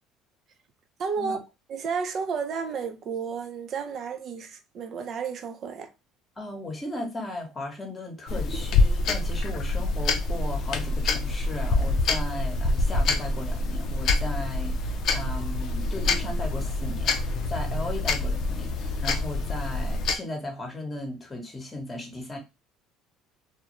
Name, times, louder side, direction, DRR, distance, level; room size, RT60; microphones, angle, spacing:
voice 1, 1.0-1.4 1.7-5.9, right 6 dB, 50° right, 0.5 m, -32 dB
voice 2, 6.4-22.4, left 1 dB, 20° left, 1.0 m, -36 dB
sound 1, 8.3-20.2, left 3 dB, 60° left, 0.5 m, -26 dB
2.3 x 2.1 x 2.9 m
supercardioid pair, 80°, 0 cm